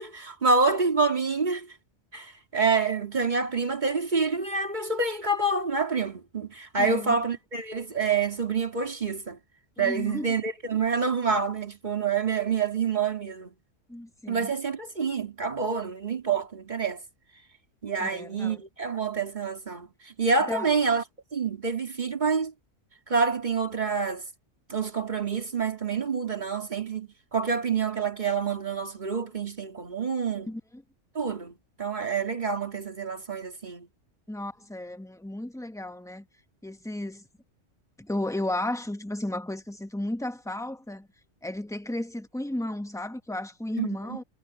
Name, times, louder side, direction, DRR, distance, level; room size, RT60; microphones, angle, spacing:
voice 1, 0.0-1.7 2.1-9.4 9.8-13.5 14.3-17.0 17.8-21.0 21.3-22.5 23.1-24.2 24.7-30.5 31.1-33.9 43.8-44.2, right 4 dB, 40° right, 2.5 m, -27 dB
voice 2, 6.8-7.2 9.8-10.3 13.9-14.5 18.0-18.6 20.5-20.7 30.5-30.6 34.3-36.2 36.6-37.2 38.0-41.1 41.4-44.2, left 1 dB, 5° left, 1.0 m, -33 dB
omnidirectional pair, 1.3 m